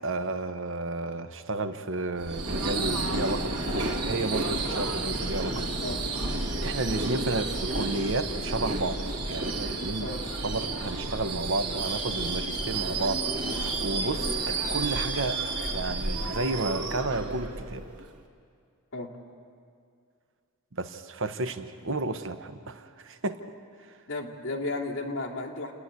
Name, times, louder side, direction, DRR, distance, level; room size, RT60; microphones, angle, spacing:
voice 1, 0.0-6.0 6.4-9.0 9.3-10.1 10.4-17.8 20.7-23.4, right 2 dB, 60° right, 9 dB, 0.9 m, -32 dB
Subway metro underground / Screech, 2.2-18.1, right 2 dB, 85° right, 2.2 m, -31 dB
voice 2, 24.1-25.7, left 2 dB, 60° left, -3 dB, 2.5 m, -33 dB
29.0 x 10.0 x 9.4 m, 2.3 s
head